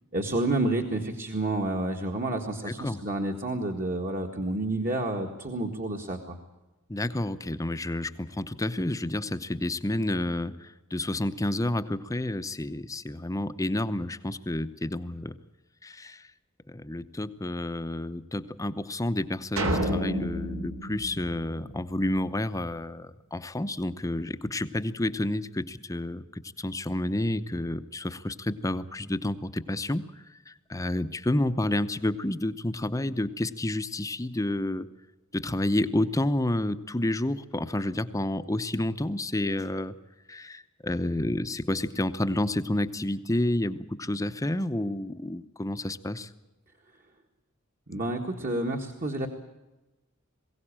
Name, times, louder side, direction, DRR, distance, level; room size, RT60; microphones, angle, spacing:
voice 1, 0.1-6.4 47.9-49.3, right 2 dB, 45° right, 2 dB, 1.8 m, -29 dB
voice 2, 2.6-3.0 6.9-15.3 15.8-16.2 16.7-30.1 30.5-34.9 35.3-39.9 40.3-46.3, left 1 dB, 15° left, 11 dB, 0.8 m, -30 dB
sound 1, 19.6-22.0, right 1 dB, 80° right, 3.6 m, -30 dB
22.0 x 16.5 x 8.8 m, 1.1 s
head